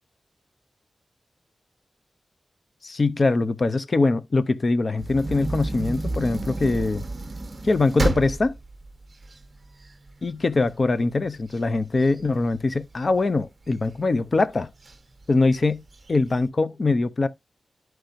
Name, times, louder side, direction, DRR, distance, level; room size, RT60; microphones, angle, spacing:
voice 1, 2.8-7.0 7.6-8.6 10.2-14.7 15.3-15.8 16.1-17.3, left 3 dB, 40° left, 0.6 m, -22 dB
sound 1, 5.0-10.2 10.7-10.8 11.1-13.2 13.7-14.2 14.8-14.9 15.2-15.3 15.8-16.4, right 2 dB, 35° right, 1.0 m, -30 dB
13.0 x 4.6 x 2.5 m
wide cardioid pair, 145°, 0 cm